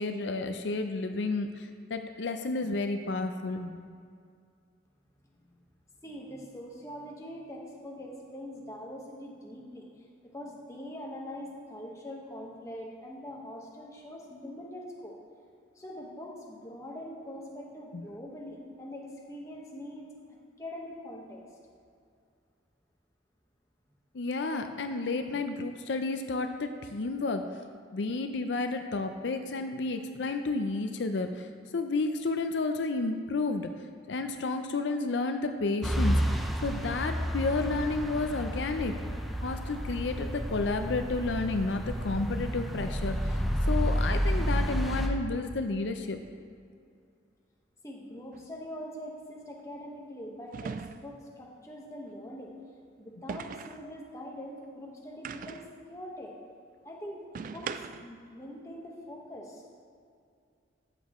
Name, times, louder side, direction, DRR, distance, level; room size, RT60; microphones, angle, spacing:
voice 1, 0.0-3.8 17.9-18.0 24.1-27.5 27.9-33.7 34.1-39.0 39.4-43.4 43.7-46.2, left 3 dB, 80° left, 7 dB, 0.5 m, -31 dB
voice 2, 6.0-9.9 10.2-15.1 15.7-20.1 20.6-21.4 47.8-52.5 53.0-56.4 56.8-57.7 58.0-59.6, equal, 15° left, -2 dB, 1.3 m, -43 dB
sound 1, 35.8-45.1, equal, ahead, 0.6 m, -30 dB
sound 2, 48.3-48.5 50.5-51.3 53.3-53.9 55.2-55.8 57.3-58.2, right 5 dB, 45° right, 0.3 m, -39 dB
13.0 x 8.7 x 3.1 m, 2.3 s
head